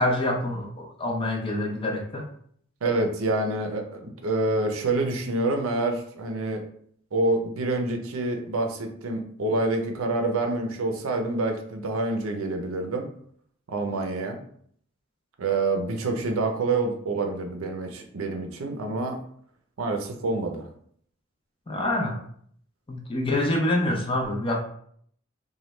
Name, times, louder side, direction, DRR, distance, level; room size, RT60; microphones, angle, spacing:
voice 1, 0.0-2.3 21.7-22.2 22.9-24.6, left 1 dB, 25° left, 1 dB, 0.5 m, -26 dB
voice 2, 2.8-6.6 7.1-13.1 13.7-14.4 15.4-19.2 19.8-20.7, right 2 dB, 80° right, 4 dB, 0.5 m, -27 dB
3.1 x 2.2 x 3.0 m, 0.63 s
head